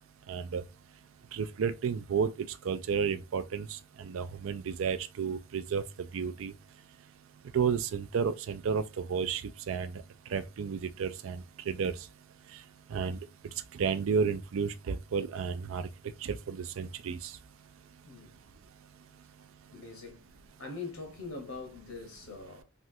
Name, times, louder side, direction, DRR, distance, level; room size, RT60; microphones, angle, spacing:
voice 1, 0.3-0.6 1.3-2.3 2.6-3.7 4.0-5.8 6.1-6.5 7.5-10.0 10.3-11.9 12.9-13.2 13.7-15.9 16.2-17.3, right 6 dB, 75° right, 0.4 m, -32 dB
voice 2, 18.0-18.4 19.7-20.3 20.6-22.6, left 4 dB, 85° left, 1.3 m, -43 dB
3.2 x 2.4 x 2.7 m
head